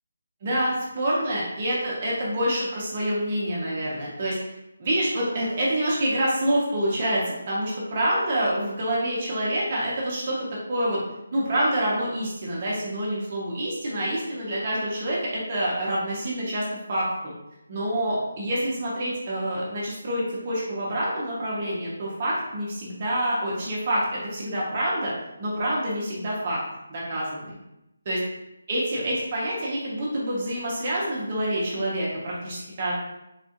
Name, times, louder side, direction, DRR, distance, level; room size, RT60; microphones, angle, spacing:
voice 1, 0.4-4.5 4.8-11.0 11.3-17.3 17.7-25.1 25.4-26.6 26.9-27.6 28.1-28.2 28.7-32.9, right 1 dB, 30° right, -5 dB, 0.8 m, -27 dB
3.5 x 2.3 x 2.8 m, 0.89 s
hypercardioid pair, 175°, 0 cm